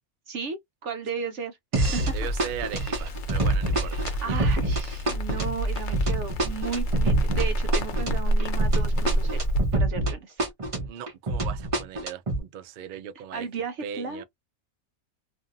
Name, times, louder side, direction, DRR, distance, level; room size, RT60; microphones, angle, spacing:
voice 1, 0.3-2.3 4.0-9.4 9.7-10.4 12.9-14.2, right 5 dB, 65° right, 0.9 m, -35 dB
sound 1, 1.7-2.1 2.4-10.1 10.4-12.4, right 1 dB, 35° right, 0.6 m, -26 dB
Crackle, 1.8-9.6, right 1 dB, 50° left, 0.6 m, -28 dB
voice 2, 2.1-4.4 10.8-13.5 13.8-14.2, right 9 dB, 85° right, 0.4 m, -38 dB
2.6 x 2.5 x 2.6 m
omnidirectional pair, 1.5 m